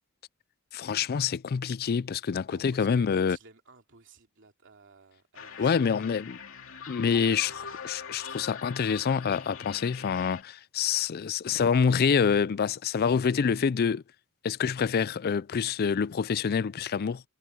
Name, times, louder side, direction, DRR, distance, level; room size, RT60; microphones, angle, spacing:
voice 1, 0.7-3.4 5.6-6.4 6.9-14.0 14.4-17.2, left 6 dB, 45° left, 0.4 m, -26 dB
voice 2, 2.5-6.3, right 4 dB, 60° right, 3.0 m, -55 dB
sound 1, 5.3-10.4, left 6 dB, 65° left, 2.7 m, -43 dB
head